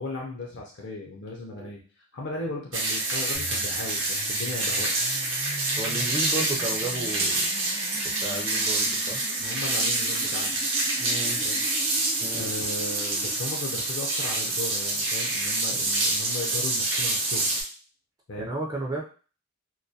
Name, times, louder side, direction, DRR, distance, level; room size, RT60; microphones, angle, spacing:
voice 1, 0.0-4.9 9.4-10.7 11.4-11.6 12.3-17.5 18.3-18.5, left 2 dB, 55° left, -1 dB, 0.4 m, -36 dB
sound 1, 2.7-17.6, right 2 dB, 65° right, 0.7 m, -27 dB
sound 2, 3.3-13.4, equal, 85° left, 0.8 m, -43 dB
voice 2, 5.8-7.5 8.0-9.2 11.0-11.5 12.2-12.5 18.4-19.0, right 2 dB, 20° right, -1 dB, 0.3 m, -33 dB
2.2 x 2.1 x 2.6 m, 0.37 s
head